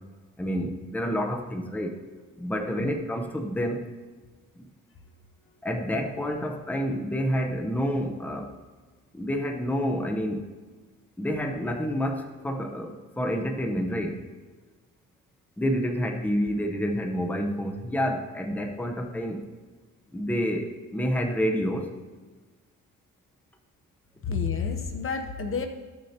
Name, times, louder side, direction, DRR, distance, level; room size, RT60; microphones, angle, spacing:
voice 1, 0.4-2.0 2.4-3.9 4.6-4.7 5.6-8.5 9.1-10.4 11.2-14.2 15.6-19.4 20.1-21.9, equal, 5° left, 3 dB, 0.9 m, -28 dB
voice 2, 24.2-25.7, left 5 dB, 45° left, 6 dB, 0.9 m, -30 dB
14.5 x 6.4 x 2.9 m, 1.3 s
cardioid pair, 90°, 30 cm